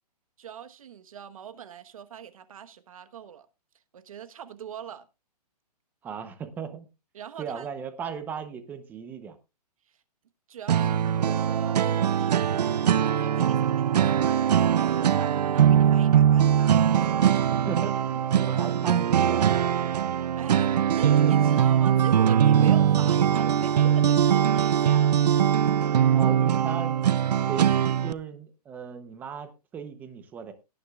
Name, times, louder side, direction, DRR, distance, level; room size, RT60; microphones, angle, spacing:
voice 1, 0.4-3.5 3.9-5.1 7.1-7.7 10.5-12.8 13.2-16.9 20.0-25.2, right 9 dB, 55° right, 1.2 m, -42 dB
voice 2, 6.0-6.8 7.4-9.4 17.5-19.7 26.1-30.5, right 6 dB, 10° right, 0.8 m, -37 dB
sound 1, 10.7-28.1, right 9 dB, 75° right, 0.6 m, -21 dB
18.0 x 9.9 x 2.4 m
hypercardioid pair, 165°, 21 cm